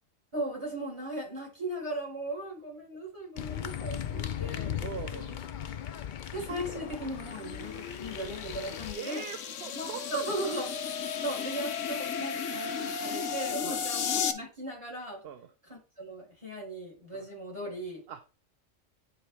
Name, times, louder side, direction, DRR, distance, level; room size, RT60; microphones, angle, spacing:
voice 1, 0.3-5.3 6.3-9.2 9.7-10.7 11.2-15.2 15.7-18.0, right 1 dB, 25° right, -3 dB, 4.5 m, -38 dB
sound 1, 3.4-8.9, left 9 dB, 55° left, 0.5 m, -38 dB
voice 2, 4.8-5.4 9.0-10.5 13.6-13.8 15.2-15.5 17.1-17.3 18.1-18.2, right 8 dB, 60° right, 9 dB, 0.8 m, -41 dB
sound 2, 6.3-14.3, left 7 dB, 70° left, 1.1 m, -35 dB
9.5 x 4.5 x 3.4 m, 0.34 s
omnidirectional pair, 1.3 m